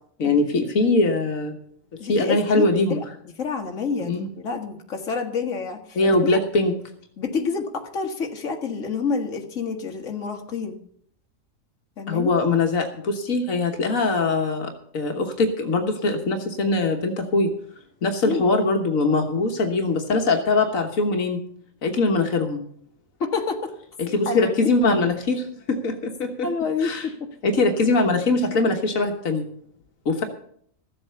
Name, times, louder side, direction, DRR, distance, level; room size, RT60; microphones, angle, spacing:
voice 1, 0.2-1.6 2.0-3.0 4.0-4.3 6.0-6.7 12.1-17.5 18.0-21.4 21.8-22.6 24.0-26.5 26.8-27.1 27.4-29.5 30.1-30.2, left 3 dB, 85° left, 4 dB, 1.7 m, -22 dB
voice 2, 2.0-3.0 3.4-6.0 6.2-6.4 7.2-10.8 12.0-12.3 18.2-18.4 23.2-23.7 24.3-24.7 26.4-27.1, left 5 dB, 70° left, 3 dB, 1.8 m, -28 dB
15.0 x 7.9 x 6.8 m, 0.65 s
omnidirectional pair, 1.4 m